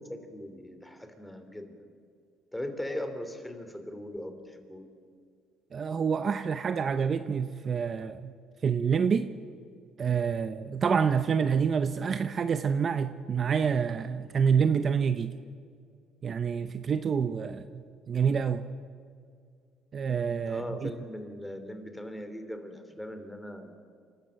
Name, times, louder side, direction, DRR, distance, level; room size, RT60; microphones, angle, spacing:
voice 1, 0.1-1.7 2.5-4.9 20.5-23.8, left 1 dB, 5° left, 8 dB, 2.8 m, -39 dB
voice 2, 5.7-8.3 8.6-9.3 10.0-15.3 16.2-18.7 19.9-20.9, right 6 dB, 40° right, 10 dB, 0.8 m, -27 dB
28.0 x 12.5 x 7.6 m, 2.2 s
cardioid pair, 95°, 0 cm